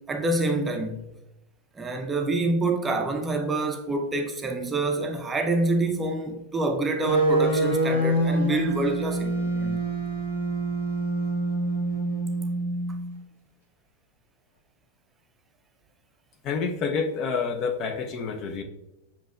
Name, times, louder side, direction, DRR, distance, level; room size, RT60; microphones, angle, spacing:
voice 1, 0.1-1.0 1.8-9.8, right 2 dB, 15° right, 0.5 m, -27 dB
sound 1, 7.1-13.1, right 2 dB, 70° left, 1.0 m, -26 dB
voice 2, 16.4-18.6, left 5 dB, 35° left, 0.5 m, -28 dB
7.3 x 2.8 x 2.3 m
figure-of-eight pair, 90°, 0 cm